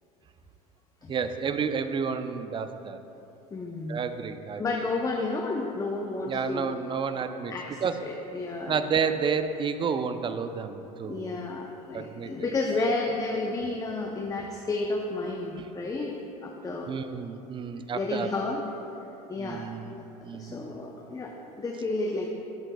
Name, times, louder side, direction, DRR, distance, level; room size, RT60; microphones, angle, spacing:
voice 1, 1.1-3.0 3.9-4.6 6.3-7.5 7.8-8.0 8.7-11.4 11.9-12.8 15.6-15.7 16.9-18.3 19.4-20.0 20.2-20.8, right 6 dB, 25° right, 9 dB, 0.5 m, -30 dB
voice 2, 3.5-4.0 4.6-6.7 7.5-8.8 11.0-16.9 17.9-18.7 19.3-19.6 20.3-22.3, left 3 dB, 20° left, 1 dB, 0.7 m, -31 dB
11.5 x 7.8 x 2.3 m, 3.0 s
hypercardioid pair, 90°, 18 cm